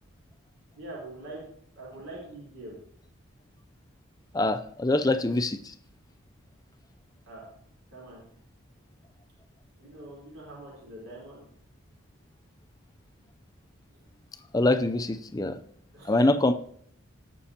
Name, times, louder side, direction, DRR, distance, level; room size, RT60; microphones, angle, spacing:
voice 1, 0.7-1.4 1.8-2.8 7.3-7.4 7.9-8.2 9.8-11.4 15.9-16.3, right 2 dB, 85° right, -6 dB, 3.8 m, -43 dB
voice 2, 4.3-5.6 14.5-15.5 16.1-16.5, left 2 dB, 15° left, 9 dB, 0.4 m, -24 dB
18.5 x 6.1 x 2.9 m, 0.65 s
head